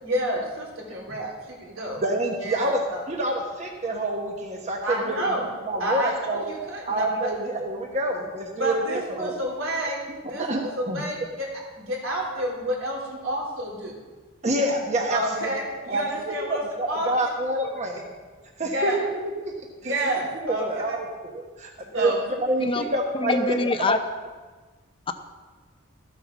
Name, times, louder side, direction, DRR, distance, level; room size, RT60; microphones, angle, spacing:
voice 1, 0.0-2.0 2.4-3.0 4.8-5.5 5.8-7.3 8.6-11.5 11.7-13.9 15.1-16.6 16.9-17.1 18.6-19.0 19.8-21.0 21.9-22.2, right 1 dB, 75° right, -2 dB, 3.3 m, -29 dB
voice 2, 2.0-2.8 3.1-5.1 5.7-6.4 6.8-9.3 10.4-10.6 10.9-11.0 14.4-15.2 15.9-16.0 16.5-18.0 18.6-19.6 19.8-19.9 20.4-21.0 21.2-22.1 22.4-23.7, right 1 dB, 35° right, 1 dB, 1.1 m, -27 dB
voice 3, 23.2-24.0, left 2 dB, 25° left, 8 dB, 0.6 m, -23 dB
14.0 x 8.0 x 6.0 m, 1.4 s
head